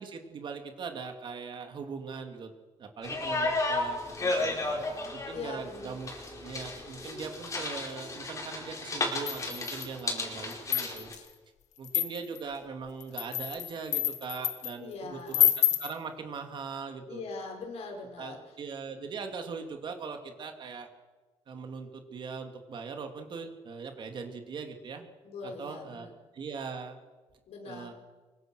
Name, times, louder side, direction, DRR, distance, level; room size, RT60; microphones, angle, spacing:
voice 1, 0.0-2.5 2.8-4.0 4.3-4.6 5.1-6.1 6.4-11.1 11.8-17.2 18.2-20.9 21.5-25.1 25.4-26.1 26.3-27.0 27.7-27.9, right 5 dB, 40° right, 5 dB, 2.5 m, -40 dB
sound 1, 3.0-11.1, left 2 dB, 25° left, 5.0 m, -33 dB
voice 2, 4.2-5.0 5.3-6.0 14.8-15.5 17.1-18.6 25.2-26.1 27.5-27.9, left 3 dB, 60° left, 3 dB, 5.3 m, -42 dB
sound 2, 9.3-10.0 10.5-11.2 11.8-12.4 13.0-14.7 15.3-15.9, left 12 dB, 90° left, 1.8 m, -28 dB
24.5 x 23.5 x 6.3 m, 1.3 s
cardioid pair, 175°, 12 cm